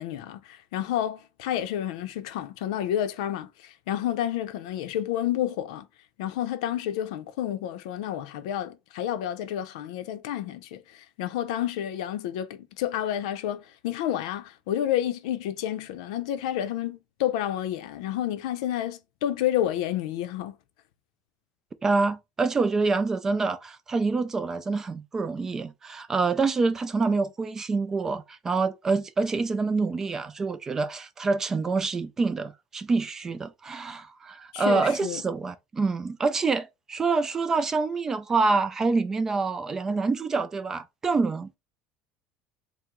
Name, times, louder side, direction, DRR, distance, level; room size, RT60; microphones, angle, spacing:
voice 1, 0.0-5.9 6.2-20.6 34.5-35.2, left 11 dB, 90° left, 0.5 m, -30 dB
voice 2, 21.8-41.6, right 4 dB, 15° right, 0.3 m, -26 dB
4.5 x 2.0 x 3.7 m
cardioid pair, 170°, 3 cm